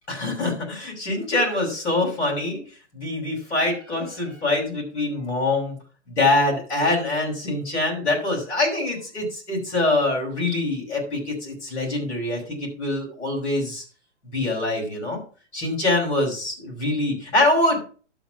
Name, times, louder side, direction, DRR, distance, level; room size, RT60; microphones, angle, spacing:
voice 1, 0.1-2.6 2.9-5.8 6.1-13.8 14.3-15.2 15.5-17.8, left 2 dB, 75° left, -2 dB, 5.4 m, -24 dB
12.0 x 4.0 x 6.0 m, 0.38 s
hypercardioid pair, 120°, 36 cm